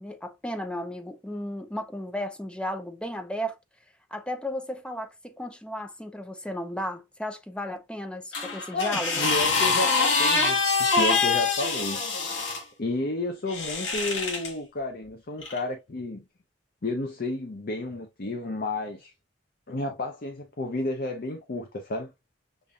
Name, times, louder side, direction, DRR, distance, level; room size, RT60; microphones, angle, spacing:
voice 1, 0.0-3.6 4.1-9.3, equal, 5° left, 0.6 m, -34 dB
sound 1, 8.3-12.6 13.5-14.5 15.4-15.6, left 4 dB, 80° left, 1.4 m, -25 dB
voice 2, 8.7-12.1 12.8-16.2 16.8-19.1 19.7-22.1, left 2 dB, 50° left, 0.6 m, -31 dB
6.9 x 2.6 x 2.4 m
head